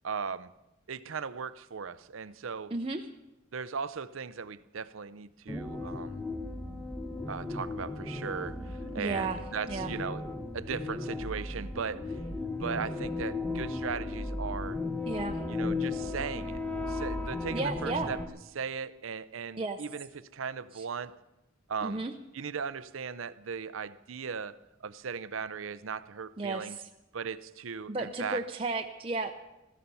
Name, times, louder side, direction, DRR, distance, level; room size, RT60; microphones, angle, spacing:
voice 1, 0.0-0.5 0.9-2.7 3.5-6.2 7.3-10.3 10.5-12.2 12.6-14.8 15.5-16.6 16.9-18.2 18.5-21.2 21.7-22.0 22.3-26.8 27.1-28.4, right 6 dB, 75° right, 14 dB, 0.6 m, -37 dB
voice 2, 2.7-3.1 9.0-9.4 9.7-9.9 15.1-15.4 17.5-18.1 19.6-19.8 20.7-20.8 21.8-22.1 26.4-26.8 27.9-29.3, right 3 dB, 25° right, 3 dB, 0.7 m, -33 dB
sound 1, 5.5-18.3, left 2 dB, 5° left, 0.9 m, -35 dB
15.5 x 14.0 x 5.5 m, 0.96 s
head